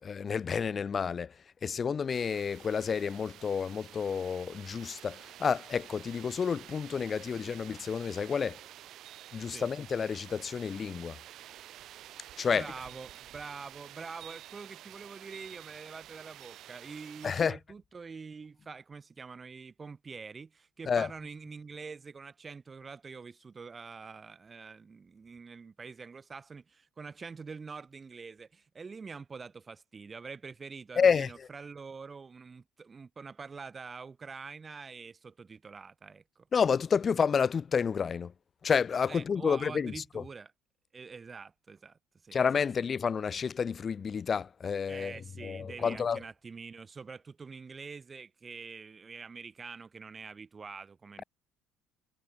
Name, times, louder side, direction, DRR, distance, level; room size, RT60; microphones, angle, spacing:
voice 1, 0.0-1.3 1.6-8.6 9.3-11.2 12.4-12.7 17.2-17.6 20.9-21.1 31.0-31.3 36.5-38.3 38.6-40.2 42.3-45.1 45.4-46.2, left 6 dB, 35° left, 0.4 m, -30 dB
sound 1, 2.1-17.5, right 13 dB, 55° right, 0.9 m, -50 dB
voice 2, 12.5-36.5 39.1-40.5 40.9-42.4 44.9-51.2, right 5 dB, 30° right, 1.2 m, -45 dB
figure-of-eight pair, 55°, 0 cm